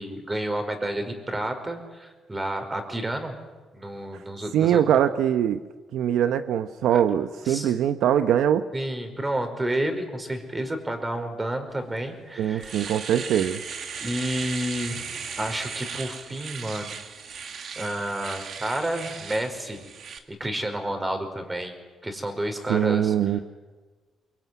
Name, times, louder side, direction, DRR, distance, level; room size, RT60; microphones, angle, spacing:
voice 1, 0.0-3.4 3.7-4.8 6.9-7.0 7.4-7.7 8.7-12.7 14.0-17.0 17.7-19.8 20.3-21.7 22.0-23.1, right 1 dB, 15° right, 6 dB, 5.0 m, -30 dB
voice 2, 4.5-5.6 5.9-8.7 12.4-13.6 22.7-23.4, right 10 dB, 80° right, 10 dB, 0.9 m, -22 dB
Domestic sounds home sounds, 12.0-12.1 12.4-20.2, right 6 dB, 60° right, 2.4 m, -37 dB
24.5 x 22.0 x 9.5 m, 1.3 s
cardioid pair, 90°, 0 cm